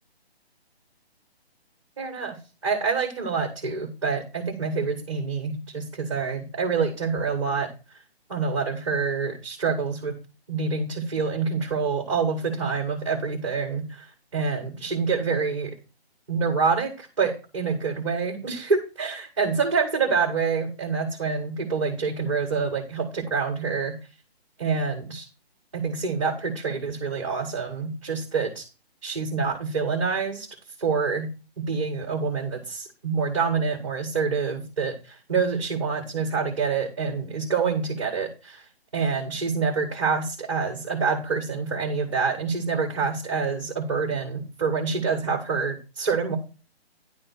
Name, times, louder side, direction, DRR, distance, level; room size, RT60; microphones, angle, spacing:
voice 1, 2.0-2.4 2.6-8.0 8.3-10.1 10.5-15.8 16.3-23.9 24.6-25.3 25.7-28.7 29.0-30.5 30.8-31.3 31.6-38.7 38.9-46.4, right 5 dB, 30° right, 1 dB, 1.3 m, -27 dB
10.5 x 3.5 x 7.0 m, 0.32 s
hypercardioid pair, 180°, 32 cm